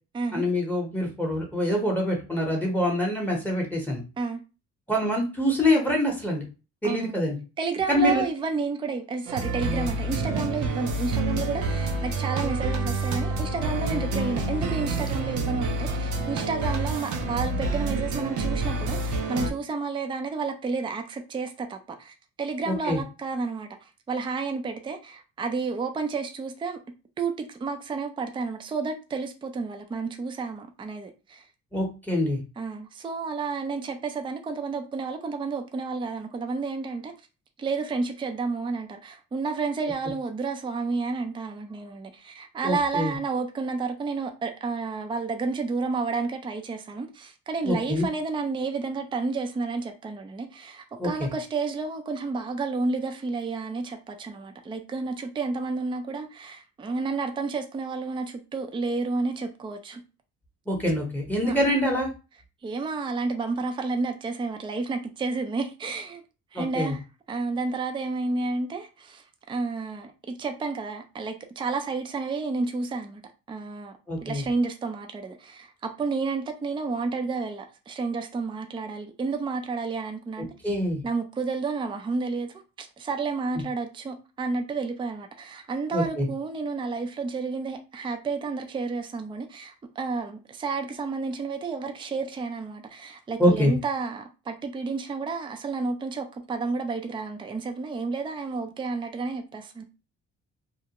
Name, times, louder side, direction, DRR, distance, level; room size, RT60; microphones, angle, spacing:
voice 1, 0.3-4.0 4.9-6.4 6.8-7.4 7.9-8.2 22.7-23.0 31.7-32.4 42.6-43.1 47.6-48.1 51.0-51.3 60.7-62.1 66.5-66.9 74.1-74.4 80.6-81.0 85.9-86.3 93.4-93.7, left 1 dB, 5° left, 0.8 m, -25 dB
voice 2, 6.8-7.2 7.6-26.8 27.2-31.5 32.6-37.1 37.6-60.0 61.4-61.6 62.6-66.2 66.5-67.0 67.3-73.2 73.5-80.5 81.0-99.8, right 4 dB, 15° right, 0.4 m, -31 dB
sound 1, 9.3-19.5, right 3 dB, 75° right, 0.6 m, -28 dB
2.4 x 2.1 x 2.8 m
cardioid pair, 90°, 30 cm